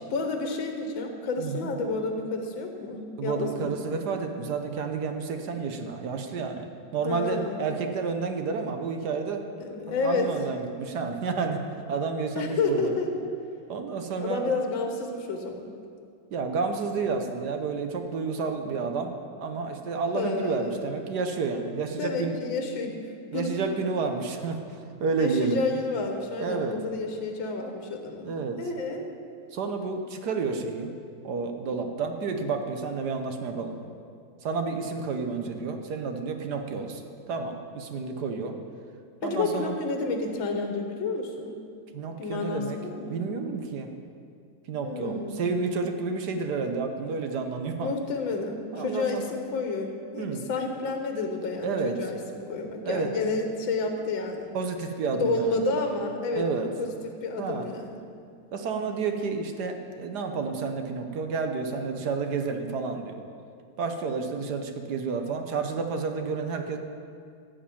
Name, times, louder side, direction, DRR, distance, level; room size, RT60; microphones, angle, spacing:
voice 1, 0.1-3.8 7.0-7.6 9.6-10.3 12.4-13.1 14.2-15.7 20.1-20.9 22.0-23.0 23.3-23.5 25.2-29.1 39.2-41.6 42.2-43.2 44.8-45.4 47.8-54.5 55.1-56.9 57.2-58.0 64.1-64.5, left 3 dB, 85° left, 4 dB, 1.8 m, -30 dB
voice 2, 1.4-1.7 3.2-6.7 6.9-9.4 9.9-11.6 11.9-12.9 13.7-14.5 16.3-22.4 23.3-25.6 26.4-26.8 28.2-28.6 29.5-30.9 31.2-33.7 34.4-38.6 39.2-39.7 41.9-42.8 43.1-43.9 44.7-47.9 48.7-49.3 50.2-50.5 51.6-52.0 52.8-53.1 54.5-55.6 56.3-56.7 57.4-57.7 58.5-63.2 63.8-66.8, right 4 dB, 65° right, 5 dB, 1.4 m, -30 dB
14.0 x 5.2 x 8.5 m, 2.3 s
omnidirectional pair, 2.1 m